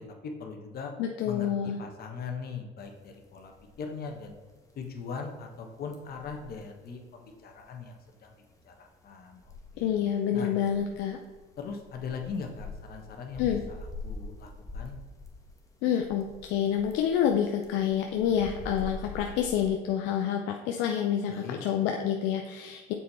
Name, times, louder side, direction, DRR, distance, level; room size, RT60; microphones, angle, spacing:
voice 1, 0.0-0.9 1.2-3.5 3.8-4.4 4.8-8.3 8.7-9.4 9.7-9.9 10.3-10.5 11.6-13.8 14.0-15.0 21.3-21.6, left 5 dB, 55° left, 4 dB, 1.3 m, -40 dB
voice 2, 1.0-1.8 9.8-11.2 13.4-13.6 15.8-22.9, left 9 dB, 75° left, 3 dB, 0.6 m, -28 dB
sound 1, 2.8-19.7, left 3 dB, 15° left, 1.4 m, -45 dB
7.4 x 4.4 x 4.2 m, 1.3 s
supercardioid pair, 80°, 19 cm